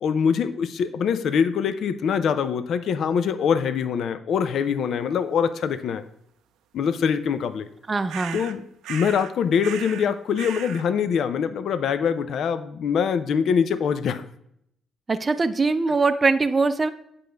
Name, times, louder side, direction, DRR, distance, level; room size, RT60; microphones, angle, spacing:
voice 1, 0.0-6.0 6.7-7.7 8.3-8.6 8.9-14.2, left 7 dB, 70° left, 11 dB, 0.5 m, -24 dB
voice 2, 7.9-8.4 15.1-16.9, right 3 dB, 30° right, 9 dB, 0.5 m, -22 dB
sound 1, 8.1-8.6 8.8-9.3 9.6-10.1 10.4-10.9, right 9 dB, 90° right, 0.5 m, -36 dB
8.4 x 5.3 x 3.4 m, 0.72 s
cardioid pair, 90°, 0 cm